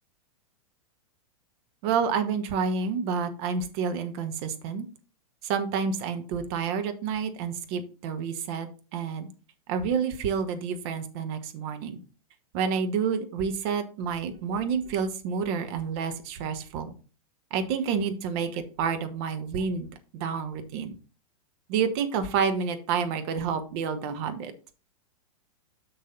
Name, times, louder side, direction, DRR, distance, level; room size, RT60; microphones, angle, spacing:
voice 1, 1.8-4.8 5.4-9.3 9.7-12.0 12.5-16.9 17.5-21.0 21.7-24.5, right 6 dB, 45° right, 8 dB, 1.2 m, -29 dB
6.6 x 6.2 x 3.8 m, 0.35 s
figure-of-eight pair, 100°, 19 cm